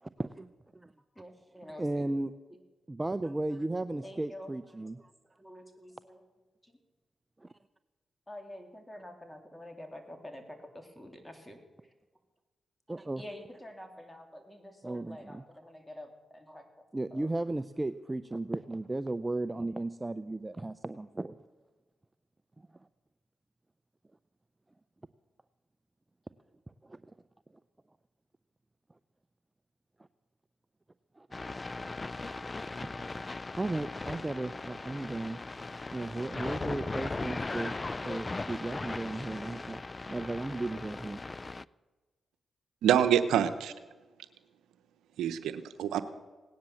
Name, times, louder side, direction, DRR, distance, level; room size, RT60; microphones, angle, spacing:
voice 1, 0.0-0.9 1.8-2.3 2.9-5.1 7.4-7.5 12.9-13.2 14.8-15.2 16.9-21.4 26.8-27.0 31.2-31.3 33.6-35.4 35.7-37.7 38.0-39.8 40.1-41.2, right 2 dB, 20° right, 13 dB, 0.6 m, -35 dB
voice 2, 1.1-2.1 2.5-2.6 4.0-4.5 4.8-4.9 5.4-6.2 6.6-6.8 8.3-11.9 13.2-16.9 17.1-17.3, left 1 dB, 10° left, 4 dB, 3.5 m, -48 dB
sound 1, 31.3-41.6, left 3 dB, 35° left, 0.4 m, -38 dB
voice 3, 42.8-43.7 45.2-46.0, right 9 dB, 90° right, 11 dB, 0.8 m, -26 dB
18.0 x 10.5 x 7.1 m, 1.3 s
supercardioid pair, 50°, 0 cm